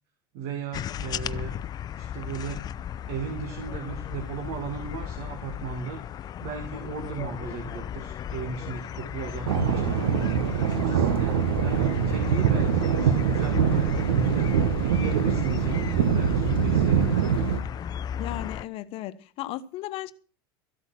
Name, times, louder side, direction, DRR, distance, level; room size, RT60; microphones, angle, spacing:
voice 1, 0.3-1.5 1.9-2.8 3.0-10.0 10.5-17.5, right 7 dB, 60° right, 2.4 m, -36 dB
sound 1, 0.7-18.6, left 10 dB, 35° left, 0.6 m, -35 dB
sound 2, 9.5-17.6, right 7 dB, 85° right, 1.4 m, -24 dB
voice 2, 18.2-20.1, left 14 dB, 50° left, 1.1 m, -35 dB
14.0 x 8.3 x 7.5 m
hypercardioid pair, 105°, 12 cm